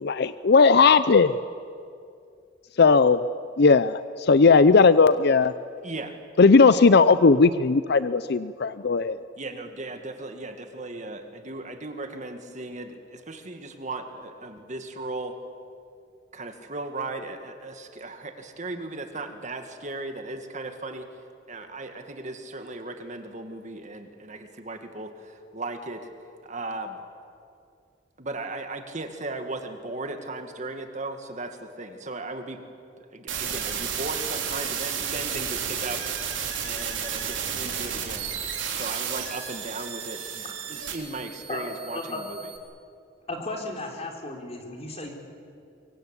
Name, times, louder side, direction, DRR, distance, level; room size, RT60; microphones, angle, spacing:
voice 1, 0.0-1.3 2.8-3.2 3.6-5.5 6.4-9.2, left 4 dB, 60° left, 14 dB, 0.6 m, -17 dB
voice 2, 9.4-15.3 16.3-21.1 21.5-26.1 26.4-27.0 28.2-32.6 33.1-36.3 36.6-38.3 38.7-42.5, right 2 dB, 40° right, 6 dB, 2.0 m, -37 dB
sound 1, 33.3-42.6, right 8 dB, 85° right, 3.7 m, -32 dB
voice 3, 43.3-45.1, left 2 dB, 35° left, 2 dB, 4.2 m, -34 dB
25.0 x 23.5 x 8.4 m, 2.4 s
head